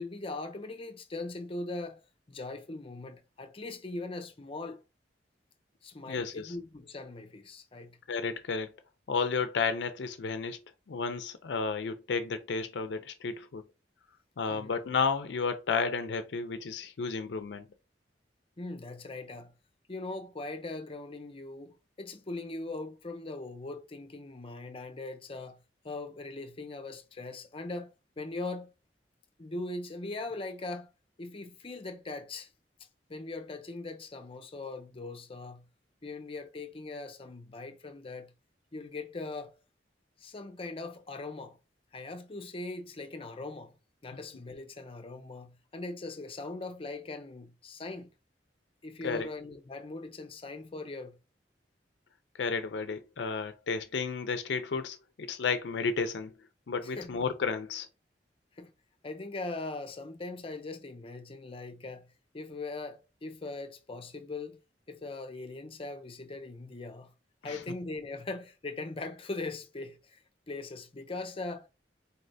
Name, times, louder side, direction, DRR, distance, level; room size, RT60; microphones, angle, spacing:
voice 1, 0.0-2.0 2.3-4.8 5.8-8.0 14.5-14.7 18.6-19.5 19.9-25.6 25.8-28.7 29.4-30.9 31.2-32.5 33.1-35.7 36.0-38.3 38.7-39.6 40.2-41.6 41.9-43.8 44.0-48.1 48.8-51.2 56.8-57.2 58.6-58.7 59.0-64.6 64.9-67.1 67.4-71.7, left 2 dB, 30° left, 0.6 m, -40 dB
voice 2, 6.1-6.5 8.1-8.7 9.1-10.6 10.9-13.6 14.4-17.7 49.0-49.3 52.4-56.3 56.7-57.9 67.4-67.6, left 5 dB, 80° left, 0.5 m, -32 dB
4.1 x 3.2 x 2.6 m
head